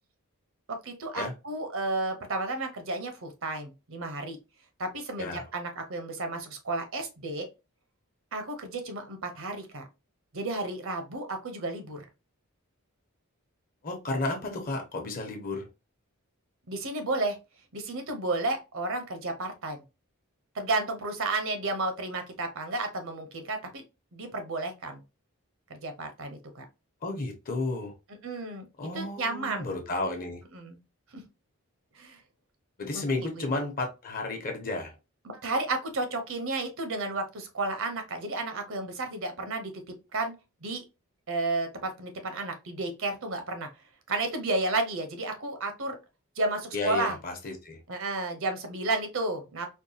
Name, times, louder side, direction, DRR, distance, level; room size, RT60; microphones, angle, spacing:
voice 1, 0.7-4.4 4.8-7.5 8.3-9.9 10.3-12.0 16.7-17.4 17.7-19.8 20.5-23.8 24.1-25.0 25.7-26.6 28.2-28.7 28.9-29.7 30.5-30.8 31.1-31.2 31.9-32.2 32.9-33.5 35.3-40.3 40.6-40.8 41.3-43.7 44.1-46.0 46.4-47.2 47.9-49.7, right 2 dB, 65° right, 0.8 m, -32 dB
voice 2, 13.8-15.7 27.0-27.9 28.8-30.4 32.8-34.9 46.7-47.8, left 2 dB, 40° left, 1.0 m, -32 dB
4.4 x 2.3 x 2.8 m
head